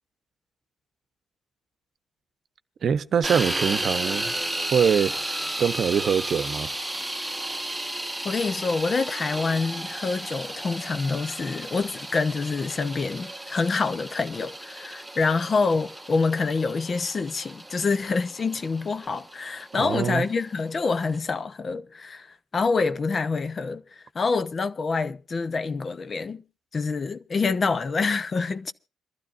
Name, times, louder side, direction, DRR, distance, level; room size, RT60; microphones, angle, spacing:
voice 1, 2.8-4.3 4.7-5.3 5.6-6.7 19.8-20.2, right 7 dB, 55° right, 0.9 m, -23 dB
sound 1, 3.2-21.2, right 1 dB, 5° right, 1.3 m, -34 dB
voice 2, 8.2-22.3 22.5-26.4 26.7-28.7, left 4 dB, 40° left, 0.8 m, -26 dB
27.0 x 12.5 x 2.6 m
cardioid pair, 90°, 0 cm